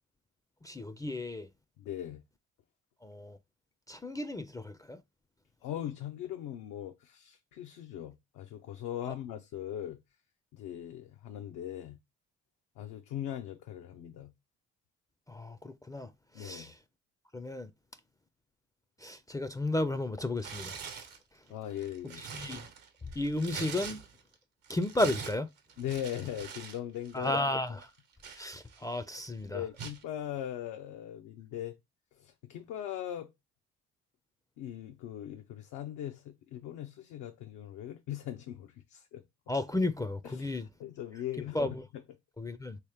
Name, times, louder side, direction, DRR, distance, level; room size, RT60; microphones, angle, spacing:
voice 1, 0.6-1.5 3.0-3.4 3.9-5.0 15.3-16.1 16.4-16.7 17.3-17.7 19.0-20.8 22.2-22.6 23.2-24.0 24.7-25.5 27.1-27.9 28.4-29.6 39.5-40.7 41.5-41.8 42.4-42.8, left 2 dB, 10° left, 0.3 m, -33 dB
voice 2, 1.8-2.2 5.6-10.0 10.5-12.0 12.8-14.3 16.3-16.7 21.5-22.2 25.8-27.4 27.7-27.8 28.3-28.5 29.4-31.8 32.2-33.3 34.6-39.2 40.2-41.6, left 11 dB, 75° left, 0.5 m, -40 dB
Tearing, 20.4-21.2 21.7-24.3 24.6-26.8 27.1-27.3 27.8-29.0 29.8-30.0, right 6 dB, 80° right, 0.9 m, -43 dB
3.1 x 3.0 x 3.3 m
supercardioid pair, 60°, 31 cm